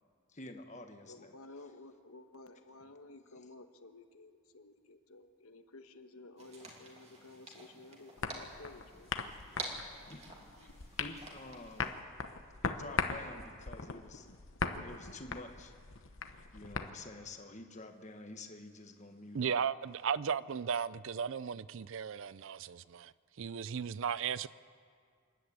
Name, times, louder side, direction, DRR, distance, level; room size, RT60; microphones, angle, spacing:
voice 1, 0.3-1.3 10.0-10.2 11.0-11.9 12.6-14.3 14.8-15.7 16.5-19.6, left 2 dB, 30° left, 1.4 m, -48 dB
voice 2, 1.1-9.1 10.5-10.7, left 2 dB, 75° left, 1.3 m, -54 dB
sound 1, 6.4-11.9, right 2 dB, 30° right, 2.6 m, -48 dB
sound 2, 8.2-16.9, left 4 dB, 60° left, 1.0 m, -40 dB
voice 3, 19.3-23.1 23.4-24.5, right 7 dB, 60° right, 0.4 m, -35 dB
27.5 x 11.5 x 8.7 m
head